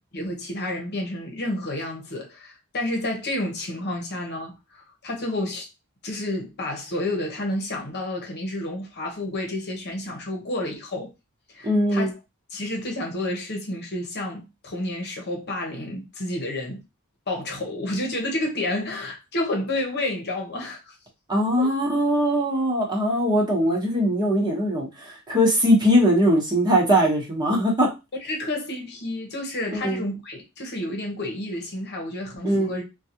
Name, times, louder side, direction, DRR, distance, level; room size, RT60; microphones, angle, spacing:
voice 1, 0.1-5.7 6.0-11.1 11.5-12.1 12.5-16.8 17.3-21.0 21.6-21.7 28.2-32.8, left 1 dB, 50° left, 1.0 m, -30 dB
voice 2, 11.6-12.1 21.3-27.9 29.7-30.0 32.4-32.7, equal, 20° right, 1.1 m, -21 dB
3.9 x 2.4 x 2.9 m
head